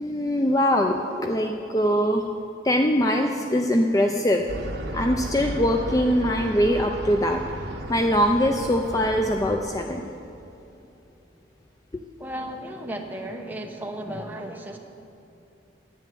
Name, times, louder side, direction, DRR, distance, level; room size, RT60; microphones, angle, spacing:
voice 1, 0.0-2.2 2.6-4.5 4.9-7.4 7.9-10.1, equal, 20° left, 3 dB, 0.4 m, -22 dB
sound 1, 4.5-9.6, equal, 65° right, 1.2 m, -34 dB
voice 2, 12.2-14.8, right 1 dB, 10° right, 2 dB, 0.9 m, -34 dB
10.5 x 9.0 x 7.6 m, 2.8 s
head